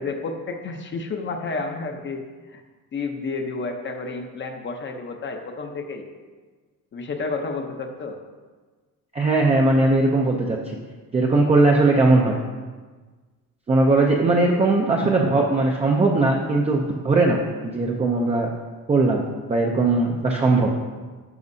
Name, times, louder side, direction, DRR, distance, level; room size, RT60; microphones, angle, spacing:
voice 1, 0.0-2.2 2.5-2.6 2.9-6.1 6.9-8.2, left 3 dB, 35° left, 4 dB, 0.7 m, -30 dB
voice 2, 9.1-10.8 11.1-12.4 13.7-17.4 17.7-18.5 18.9-20.7, right 2 dB, 20° right, -1 dB, 0.5 m, -19 dB
10.5 x 5.9 x 2.7 m, 1.4 s
cardioid pair, 150°, 33 cm